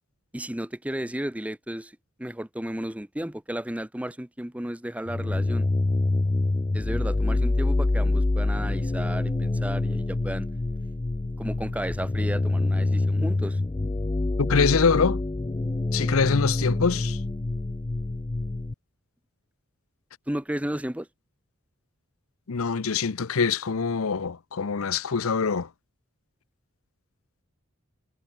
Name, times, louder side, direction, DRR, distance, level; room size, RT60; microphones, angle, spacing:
voice 1, 0.3-1.9 2.2-5.7 6.7-10.5 11.4-13.6 20.3-21.1, right 1 dB, 5° right, 0.8 m, -33 dB
sound 1, 5.1-18.7, left 2 dB, 20° left, 0.4 m, -26 dB
voice 2, 14.4-15.2 15.9-17.2 22.5-25.7, left 5 dB, 80° left, 0.7 m, -24 dB
head